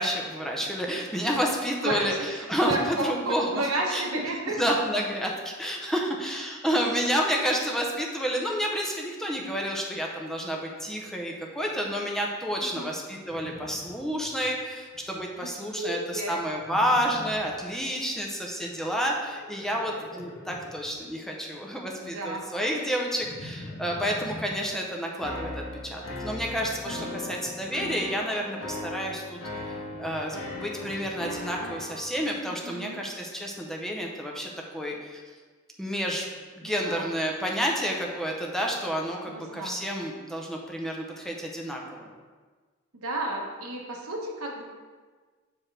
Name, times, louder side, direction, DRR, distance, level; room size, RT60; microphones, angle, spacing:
voice 1, 0.0-3.6 3.9-4.0 4.6-25.5 25.8-35.2 35.8-36.3 36.6-42.1, equal, ahead, -1 dB, 0.6 m, -30 dB
voice 2, 1.8-4.6 12.6-13.0 15.4-16.4 22.0-22.4 27.1-27.4 32.5-33.0 36.6-37.2 39.3-40.1 42.9-44.6, right 2 dB, 70° right, 0 dB, 1.1 m, -33 dB
Livestock farm animals working animals, 13.2-14.5 14.8-15.3 16.6-17.6 19.2-20.9 23.2-24.6 26.6-27.7 29.5-31.2, left 1 dB, 50° left, 0.8 m, -45 dB
sound 1, 25.2-32.0, left 1 dB, 75° left, 1.4 m, -38 dB
7.3 x 4.6 x 3.3 m, 1.4 s
head